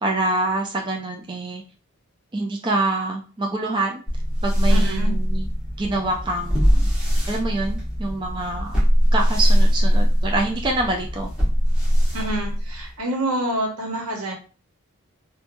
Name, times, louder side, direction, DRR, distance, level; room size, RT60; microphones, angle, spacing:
voice 1, 0.0-1.6 2.3-4.0 4.4-5.5 5.8-6.9 7.3-8.7 9.1-11.3, right 2 dB, 20° right, 1 dB, 0.4 m, -26 dB
sound 1, 4.1-13.0, equal, 5° right, 0.9 m, -21 dB
voice 2, 4.7-5.1 12.1-14.3, right 1 dB, 85° right, 0 dB, 1.0 m, -27 dB
3.0 x 2.2 x 2.5 m, 0.36 s
head